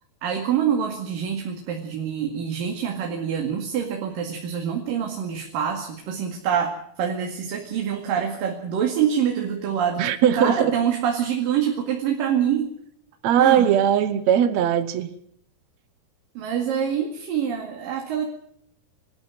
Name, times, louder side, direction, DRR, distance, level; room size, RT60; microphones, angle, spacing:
voice 1, 0.2-10.1 10.3-12.7 13.4-13.8 16.4-18.3, right 8 dB, 60° right, 2 dB, 3.6 m, -25 dB
voice 2, 10.0-10.7 13.2-15.1, right 9 dB, 90° right, 11 dB, 1.5 m, -19 dB
27.0 x 13.0 x 7.9 m, 0.67 s
omnidirectional pair, 4.9 m